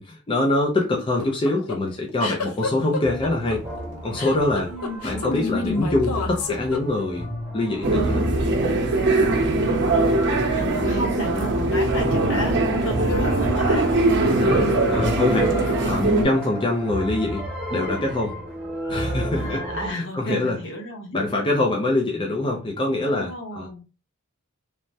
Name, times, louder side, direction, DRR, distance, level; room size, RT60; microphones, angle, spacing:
voice 1, 0.0-3.6 4.0-4.7 5.0-7.3 7.5-8.2 14.4-15.6 15.8-17.4 17.7-18.4 18.9-20.6 21.1-23.7, left 2 dB, 25° left, 0.4 m, -24 dB
sound 1, 1.0-7.3, left 4 dB, 80° left, 0.5 m, -29 dB
sound 2, 3.0-19.9, right 1 dB, 5° right, 1.2 m, -32 dB
voice 2, 4.7-5.3 9.7-10.0 10.5-14.0 14.7-14.9 19.3-21.2 23.0-23.8, left 1 dB, 60° left, 0.9 m, -33 dB
sound 3, 7.8-16.2, right 2 dB, 55° right, 0.7 m, -21 dB
3.2 x 2.1 x 2.7 m
head